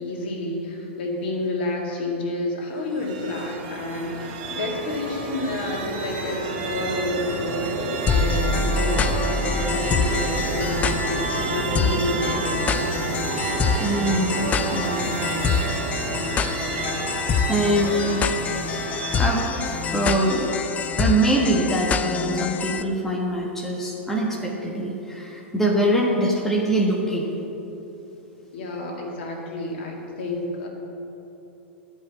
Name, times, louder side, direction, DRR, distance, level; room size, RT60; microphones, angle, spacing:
voice 1, 0.0-12.9 15.2-15.4 28.5-30.7, left 2 dB, 55° left, -1 dB, 2.1 m, -29 dB
sound 1, 2.8-21.0, right 4 dB, 45° right, 1.5 m, -30 dB
sound 2, 8.1-22.8, left 5 dB, 20° left, 0.4 m, -26 dB
voice 2, 13.8-15.2 16.7-16.9 17.5-18.4 19.2-19.4 19.9-20.5 21.0-27.3, right 1 dB, 5° left, -2 dB, 1.3 m, -23 dB
11.0 x 5.4 x 8.1 m, 3.0 s
figure-of-eight pair, 95°, 7 cm